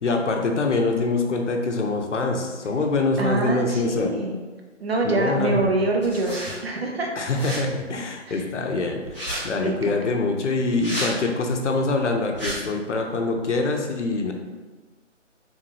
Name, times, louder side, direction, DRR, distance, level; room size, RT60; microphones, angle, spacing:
voice 1, 0.0-4.1 5.0-5.7 7.2-9.0 9.4-14.3, left 3 dB, 70° left, 3 dB, 0.7 m, -24 dB
voice 2, 3.2-4.3 4.8-7.1 8.3-8.4 9.6-10.0, right 2 dB, 55° right, 1 dB, 0.7 m, -25 dB
sound 1, 6.0-6.6 7.3-7.6 9.0-9.4 10.7-11.1 12.3-12.5, equal, 5° right, 0.8 m, -31 dB
3.4 x 2.7 x 3.1 m, 1.3 s
figure-of-eight pair, 160°, 37 cm